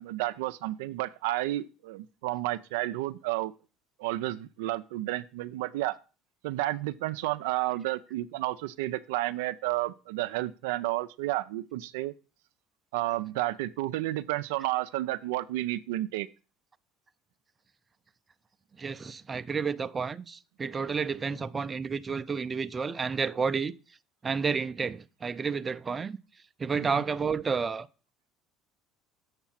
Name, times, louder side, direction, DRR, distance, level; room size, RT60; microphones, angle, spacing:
voice 1, 0.0-3.5 4.0-6.0 6.4-12.1 12.9-16.3 26.8-26.9, right 16 dB, 85° right, 0.4 m, -31 dB
voice 2, 18.8-23.7 24.2-26.2 26.6-27.9, right 5 dB, 25° right, 0.5 m, -31 dB
7.3 x 5.9 x 5.7 m
supercardioid pair, 90°, 0 cm